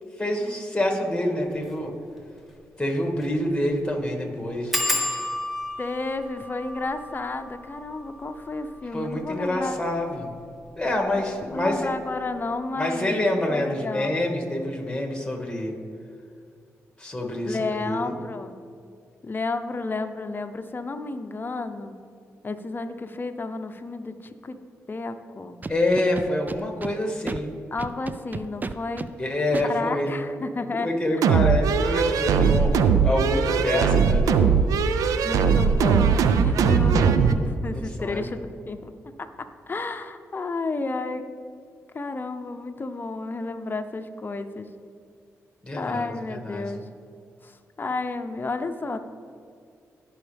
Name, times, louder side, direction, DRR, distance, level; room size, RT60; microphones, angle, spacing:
voice 1, 0.2-1.9 2.8-4.7 8.9-10.3 10.8-11.9 12.8-15.7 17.0-18.1 25.7-27.5 29.2-30.2 30.7-32.7 33.0-34.7 37.7-38.2 45.6-46.7, left 1 dB, 15° left, 2 dB, 2.1 m, -27 dB
sound 1, 1.5-1.7 2.2-2.3 2.5-2.6 3.1-3.4 3.6-3.7 4.7-10.0 10.7-11.2 11.5-11.9 12.1-12.2, left 1 dB, ahead, 1.7 m, -32 dB
voice 2, 5.8-9.8 11.5-14.2 17.4-18.5 19.2-21.9 22.4-24.6 24.9-25.6 27.7-29.1 29.7-30.9 35.2-38.9 39.2-41.2 41.9-44.7 45.8-46.9 47.4-49.0, left 3 dB, 35° left, 8 dB, 0.8 m, -31 dB
Scratching (performance technique), 25.6-26.9 27.3-27.4 27.8-29.1 29.5-29.7, right 3 dB, 30° right, 0.4 m, -32 dB
sound 2, 31.2-37.4, right 6 dB, 85° right, 0.5 m, -20 dB
16.5 x 5.6 x 3.5 m, 2.3 s
supercardioid pair, 55°, 6 cm